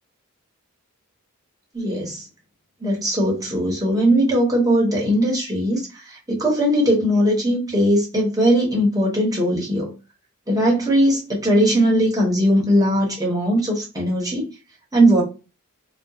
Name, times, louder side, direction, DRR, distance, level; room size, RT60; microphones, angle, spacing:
voice 1, 1.7-2.3 2.8-9.9 10.5-14.5 14.9-15.2, equal, 15° right, 0.9 m, -19 dB
2.9 x 2.1 x 2.3 m
head